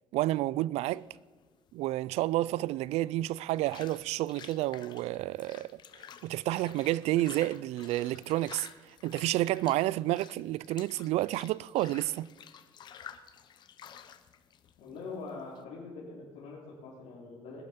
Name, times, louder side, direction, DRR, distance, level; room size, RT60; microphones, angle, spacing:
voice 1, 0.1-1.1 1.7-5.7 6.2-8.7 9.0-12.3, right 16 dB, 75° right, 0.4 m, -30 dB
sound 1, 0.9-15.6, left 9 dB, 45° left, 0.8 m, -52 dB
voice 2, 14.8-17.6, left 4 dB, 85° left, 4.0 m, -43 dB
20.5 x 11.5 x 5.3 m
cardioid pair, 160°, 11 cm